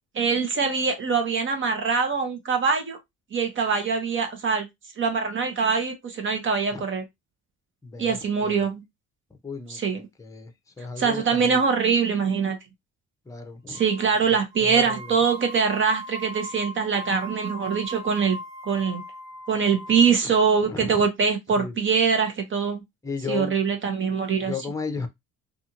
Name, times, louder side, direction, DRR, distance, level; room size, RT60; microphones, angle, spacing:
voice 1, 0.1-3.0 3.3-4.7 5.0-7.0 8.0-8.8 9.7-10.1 11.0-12.6 13.7-18.4 18.6-19.0 19.5-22.8 23.3-24.5, right 5 dB, 40° right, 1.0 m, -23 dB
voice 2, 7.8-8.7 9.4-9.8 10.2-10.5 10.8-11.6 13.3-13.8 14.6-15.1 20.6-21.0 21.5-21.8 23.0-23.5 24.4-25.1, left 5 dB, 10° left, 0.7 m, -34 dB
sound 1, 13.7-14.2 14.5-20.1, right 1 dB, 85° right, 1.3 m, -39 dB
2.6 x 2.5 x 2.9 m
cardioid pair, 90°, 30 cm